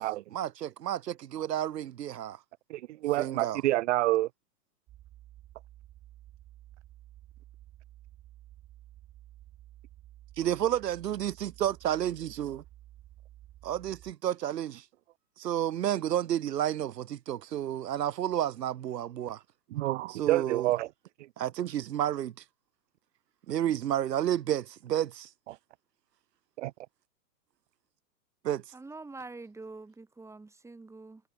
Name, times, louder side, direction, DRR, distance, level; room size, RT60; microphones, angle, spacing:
voice 1, 0.3-2.4 3.2-3.6 10.4-12.6 13.6-14.8 15.4-19.4 20.1-20.7 21.4-22.3 23.5-25.3 28.4-28.6, right 11 dB, 80° right, 1.7 m, -31 dB
voice 2, 2.7-4.3 19.7-20.9 25.5-25.6 26.6-26.7, right 16 dB, 50° right, 0.5 m, -28 dB
sound 1, 4.9-14.1, right 14 dB, 25° right, 4.4 m, -53 dB
voice 3, 28.7-31.2, right 3 dB, 5° right, 5.2 m, -45 dB
hypercardioid pair, 150°, 49 cm